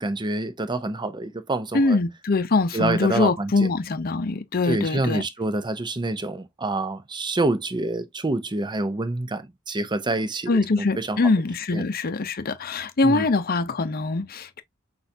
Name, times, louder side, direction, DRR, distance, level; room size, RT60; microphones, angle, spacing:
voice 1, 0.0-2.0 2.7-3.7 4.7-10.6 11.0-11.2 11.7-11.8 13.0-13.2, right 2 dB, 20° right, 0.6 m, -27 dB
voice 2, 1.7-5.2 10.5-14.6, left 3 dB, 45° left, 0.7 m, -23 dB
6.2 x 2.5 x 2.7 m
head